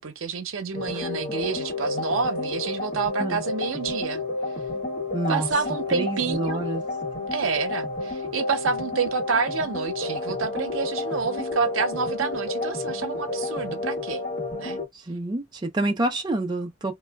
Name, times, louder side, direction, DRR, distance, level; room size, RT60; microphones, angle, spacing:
voice 1, 0.0-4.2 5.3-6.6 7.3-14.2 14.6-14.8, right 5 dB, 80° right, 0.6 m, -28 dB
sound 1, 0.7-14.9, left 2 dB, 40° left, 1.1 m, -31 dB
voice 2, 5.1-5.5 5.9-6.8 14.9-16.9, right 1 dB, 20° right, 0.4 m, -27 dB
2.2 x 2.1 x 3.3 m
head